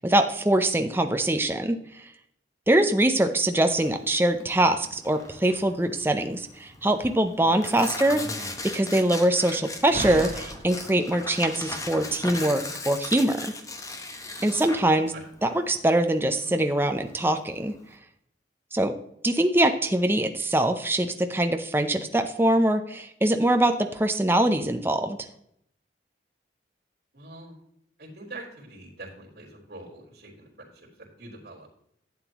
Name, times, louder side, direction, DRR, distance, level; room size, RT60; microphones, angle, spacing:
voice 1, 0.0-2.1 2.7-13.5 14.4-15.1 15.4-17.7 18.7-18.9 19.2-25.2, right 1 dB, 15° right, 6 dB, 0.5 m, -23 dB
Tearing, 3.7-17.9, left 2 dB, 20° left, 0.9 m, -38 dB
Slam, 4.7-12.1, right 2 dB, 40° right, 0.9 m, -43 dB
voice 2, 8.0-8.5 15.1-15.2 27.1-27.6 28.0-31.7, right 2 dB, 60° right, -6 dB, 3.4 m, -44 dB
11.5 x 7.9 x 3.0 m, 0.72 s
head